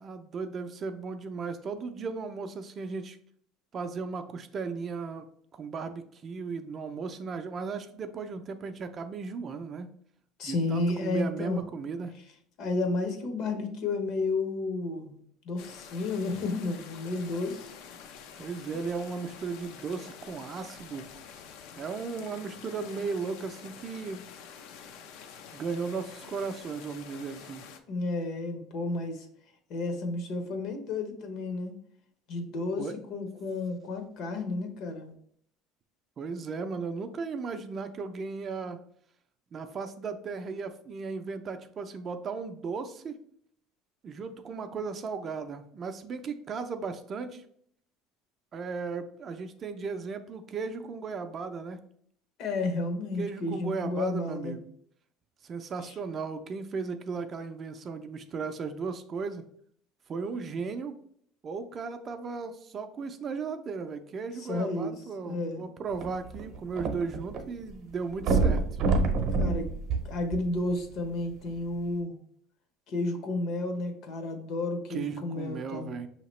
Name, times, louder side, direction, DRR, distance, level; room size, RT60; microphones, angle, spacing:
voice 1, 0.0-3.2 3.7-5.3 5.5-9.9 10.4-12.1 18.4-21.1 21.8-24.2 25.5-27.6 32.8-32.9 36.2-38.8 39.5-43.2 44.0-47.4 48.5-51.8 53.2-54.7 55.4-59.5 60.1-61.0 61.4-68.6 74.9-76.1, right 5 dB, 30° right, 8 dB, 0.4 m, -36 dB
voice 2, 10.4-11.6 12.6-15.2 15.4-17.7 18.1-18.2 27.9-29.3 29.7-31.7 32.3-35.1 52.4-54.6 55.9-56.0 64.4-65.0 65.2-65.7 69.4-69.7 70.0-72.2 72.9-75.9, left 2 dB, 55° left, 6 dB, 0.9 m, -32 dB
sound 1, 15.6-27.8, left 7 dB, 75° left, 0.5 m, -48 dB
sound 2, 65.9-67.4 67.7-67.8 68.2-70.8 71.5-71.6, right 3 dB, 50° right, 0.7 m, -27 dB
5.9 x 2.8 x 3.1 m, 0.65 s
cardioid pair, 150°, 0 cm